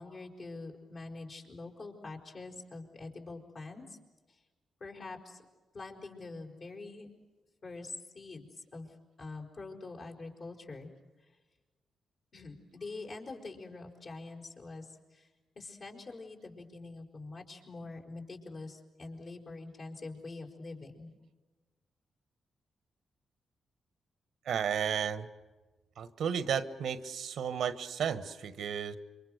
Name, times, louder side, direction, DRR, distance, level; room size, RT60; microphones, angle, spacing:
voice 1, 0.0-3.8 4.3-4.4 4.8-5.4 5.7-7.1 7.6-8.9 9.2-10.9 12.3-15.3 15.5-21.1, left 3 dB, 55° left, 1 dB, 5.1 m, -45 dB
voice 2, 24.5-25.3 26.0-29.0, right 7 dB, 80° right, 13 dB, 1.3 m, -33 dB
27.5 x 24.5 x 6.6 m, 1.3 s
cardioid pair, 65°, 0 cm